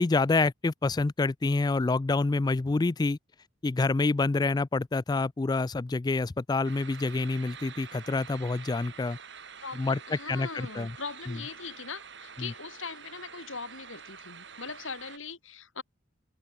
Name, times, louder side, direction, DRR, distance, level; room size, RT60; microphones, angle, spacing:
voice 1, 0.0-3.2 3.6-9.2 9.7-10.9 11.3-11.4 12.4-12.5, left 3 dB, 20° left, 0.3 m, -27 dB
sound 1, 6.6-15.2, right 6 dB, 60° right, 6.6 m, -47 dB
voice 2, 9.6-15.8, left 5 dB, 80° left, 4.6 m, -41 dB
head